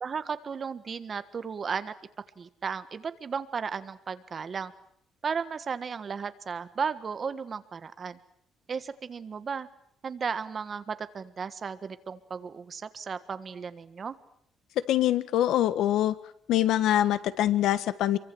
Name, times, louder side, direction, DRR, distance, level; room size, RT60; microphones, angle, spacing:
voice 1, 0.0-1.9 2.4-4.7 5.2-8.2 8.7-9.7 10.0-14.2, right 6 dB, 30° right, 12 dB, 1.5 m, -34 dB
voice 2, 14.9-16.1 16.5-18.2, left 12 dB, 80° left, 15 dB, 1.5 m, -24 dB
27.5 x 24.0 x 7.9 m, 0.67 s
cardioid pair, 170°, 0 cm